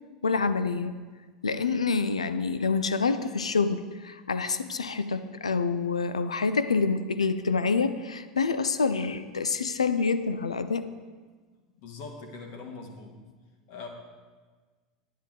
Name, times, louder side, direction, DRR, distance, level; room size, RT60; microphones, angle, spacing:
voice 1, 0.2-1.0 1.4-10.9, left 4 dB, 85° left, 12 dB, 0.5 m, -27 dB
voice 2, 11.8-13.2 13.7-13.9, left 4 dB, 55° left, 2 dB, 1.8 m, -41 dB
10.0 x 10.0 x 3.8 m, 1.4 s
figure-of-eight pair, 85°, 3 cm